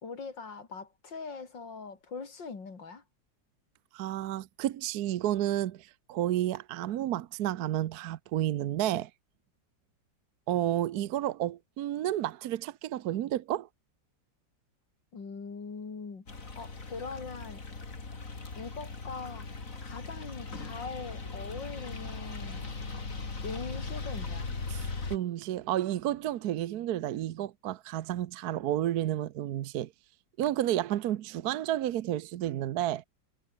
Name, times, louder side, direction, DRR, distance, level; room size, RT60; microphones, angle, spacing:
voice 1, 0.0-3.0 15.1-17.6 18.6-19.5 19.8-22.7 23.4-24.5, left 4 dB, 75° left, 3.8 m, -42 dB
voice 2, 3.9-9.1 10.5-13.7 24.7-29.9 30.4-33.0, right 12 dB, 65° right, 1.1 m, -31 dB
sound 1, 16.3-25.2, left 3 dB, 45° left, 3.4 m, -39 dB
omnidirectional pair, 2.0 m